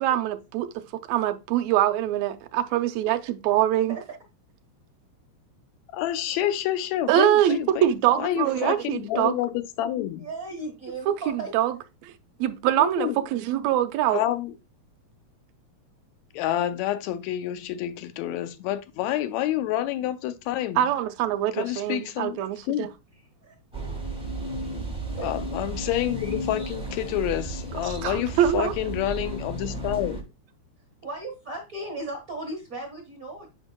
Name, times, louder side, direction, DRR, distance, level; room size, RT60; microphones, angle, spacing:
voice 1, 0.0-4.0 7.1-9.3 11.1-11.7 12.0-12.1 12.4-14.2 20.8-22.9 28.0-28.7, right 11 dB, 75° right, 1.8 m, -24 dB
voice 2, 5.9-10.3 12.8-13.2 14.1-14.5 16.3-20.8 21.5-22.4 22.7-22.9 25.2-30.2, left 12 dB, 80° left, 1.8 m, -28 dB
voice 3, 10.2-11.5 23.4-23.5 25.1-25.3 31.0-33.5, right 2 dB, 60° right, 0.9 m, -36 dB
sound 1, 23.7-30.2, right 1 dB, 5° right, 0.5 m, -33 dB
7.9 x 5.4 x 2.3 m
omnidirectional pair, 3.4 m